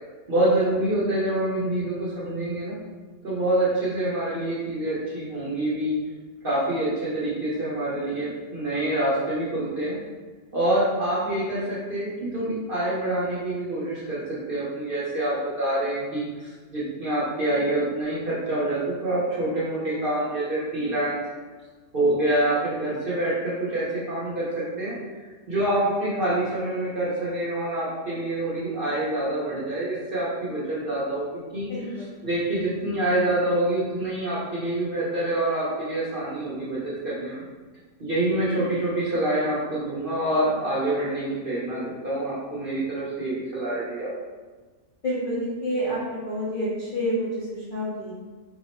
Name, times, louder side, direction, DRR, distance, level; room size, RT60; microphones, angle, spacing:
voice 1, 0.3-2.8 3.2-5.9 6.4-9.9 10.5-21.2 21.9-24.9 25.5-31.2 31.5-31.7 32.2-37.4 38.0-44.1, right 1 dB, 50° right, -9 dB, 0.7 m, -26 dB
voice 2, 31.7-32.2 45.0-48.1, equal, 50° left, -9 dB, 0.6 m, -29 dB
2.8 x 2.0 x 4.0 m, 1.4 s
omnidirectional pair, 1.6 m